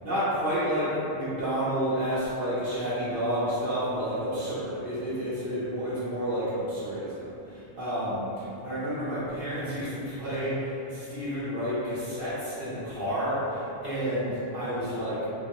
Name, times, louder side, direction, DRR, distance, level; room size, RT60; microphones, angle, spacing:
voice 1, 0.0-15.3, equal, 55° right, -12 dB, 1.0 m, -30 dB
3.7 x 2.4 x 2.9 m, 2.9 s
omnidirectional pair, 1.2 m